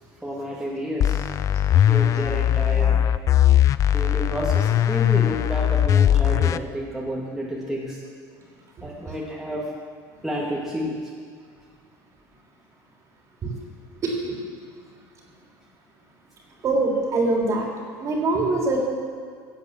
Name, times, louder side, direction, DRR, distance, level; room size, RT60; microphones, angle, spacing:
voice 1, 0.2-1.2 1.8-3.0 3.9-8.0 8.8-9.7 10.2-10.9 18.3-18.4, equal, 5° right, -5 dB, 2.4 m, -30 dB
sound 1, 1.0-6.6, left 11 dB, 40° left, 0.5 m, -19 dB
voice 2, 14.0-14.4 16.6-17.7 18.0-18.8, right 3 dB, 40° right, -1 dB, 3.4 m, -23 dB
16.0 x 8.2 x 7.5 m, 2.1 s
cardioid pair, 135°, 8 cm